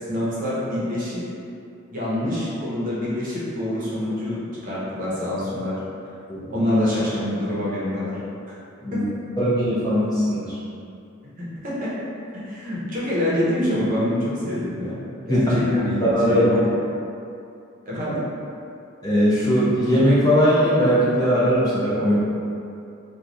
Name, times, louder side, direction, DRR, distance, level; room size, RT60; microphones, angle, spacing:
voice 1, 0.1-1.2 1.9-5.7 6.5-8.2 8.9-9.0 11.4-11.9 12.3-15.0 15.3-16.7 17.9-18.2, left 1 dB, 40° right, -8 dB, 0.8 m, -26 dB
voice 2, 6.3-6.7 8.8-9.0 9.4-10.6 15.3-16.6 19.0-22.1, equal, 20° left, -10 dB, 0.7 m, -20 dB
3.0 x 2.3 x 3.8 m, 2.6 s
head